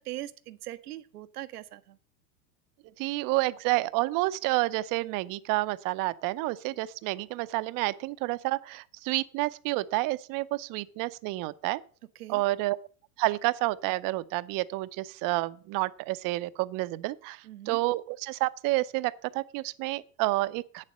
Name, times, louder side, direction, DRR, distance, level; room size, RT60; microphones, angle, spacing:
voice 1, 0.0-2.0 12.2-12.4 17.4-17.8, right 14 dB, 90° right, 0.9 m, -41 dB
voice 2, 3.0-11.8 12.3-12.8 13.2-20.8, right 20 dB, 45° right, 0.7 m, -29 dB
9.0 x 7.5 x 7.5 m
hypercardioid pair, 105°, 45 cm